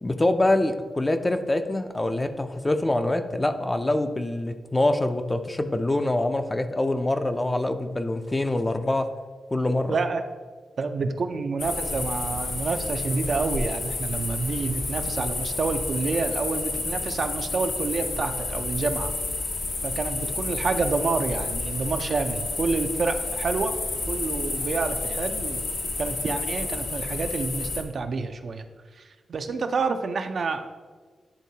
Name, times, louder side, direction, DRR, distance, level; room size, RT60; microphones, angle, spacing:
voice 1, 0.0-9.1 9.5-10.0, left 1 dB, 20° left, 8 dB, 0.4 m, -25 dB
voice 2, 9.9-10.2 10.8-19.1 19.8-23.7 24.1-25.6 26.0-28.7 28.9-30.8, right 4 dB, 60° right, 7 dB, 0.4 m, -28 dB
sound 1, 11.6-27.8, left 3 dB, 80° left, 0.9 m, -30 dB
9.9 x 3.6 x 2.7 m, 1.4 s
cardioid pair, 85°, 0 cm